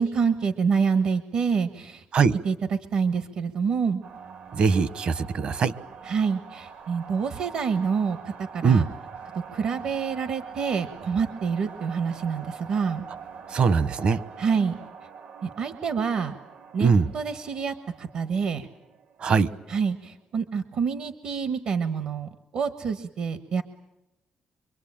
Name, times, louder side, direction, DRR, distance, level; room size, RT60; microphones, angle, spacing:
voice 1, 0.0-2.0 2.4-2.5 2.9-4.0 6.1-8.8 9.5-13.0 14.4-14.8 15.4-16.3 16.7-18.7 19.7-23.6, right 6 dB, 60° right, 10 dB, 1.3 m, -27 dB
sound 1, 4.0-19.8, right 6 dB, 80° right, 2.6 m, -44 dB
voice 2, 4.5-5.7 8.6-8.8 13.5-14.2 16.8-17.1 19.2-19.5, right 5 dB, 45° right, 16 dB, 1.0 m, -21 dB
25.0 x 24.0 x 8.8 m, 0.93 s
cardioid pair, 170°, 3 cm